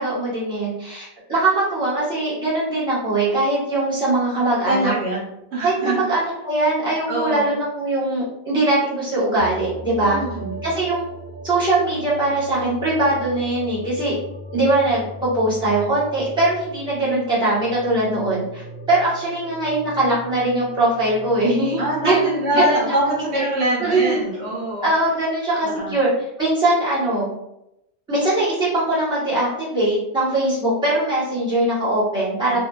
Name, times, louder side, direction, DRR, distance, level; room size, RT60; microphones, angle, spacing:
voice 1, 0.0-4.9 5.6-10.2 10.6-11.0 11.4-14.2 14.5-22.8 23.3-23.4 23.8-24.1 24.8-26.1 26.4-27.3 28.1-32.6, right 2 dB, 5° right, -10 dB, 1.0 m, -21 dB
voice 2, 4.7-5.2 5.5-6.1 7.1-7.4 10.0-10.5 21.8-24.9 25.6-26.0 32.5-32.6, right 1 dB, 70° right, -4 dB, 0.9 m, -24 dB
sound 1, 9.4-25.4, equal, 70° left, 1.0 m, -38 dB
2.8 x 2.1 x 2.3 m, 0.85 s
omnidirectional pair, 1.2 m